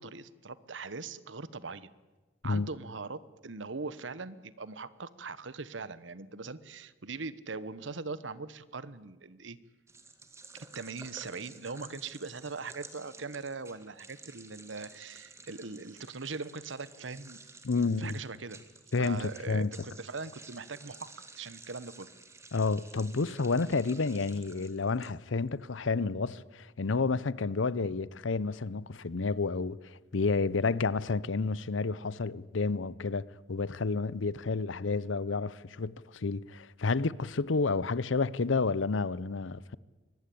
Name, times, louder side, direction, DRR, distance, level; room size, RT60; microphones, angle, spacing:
voice 1, 0.0-1.9 2.4-9.6 10.5-17.4 17.7-18.6 19.0-21.1 21.4-22.1, right 4 dB, 75° right, 1.1 m, -41 dB
sound 1, 9.9-25.5, right 3 dB, 15° right, 1.9 m, -53 dB
voice 2, 17.6-18.1 18.9-19.7 22.5-39.8, left 4 dB, 85° left, 0.7 m, -30 dB
23.5 x 19.5 x 8.6 m
head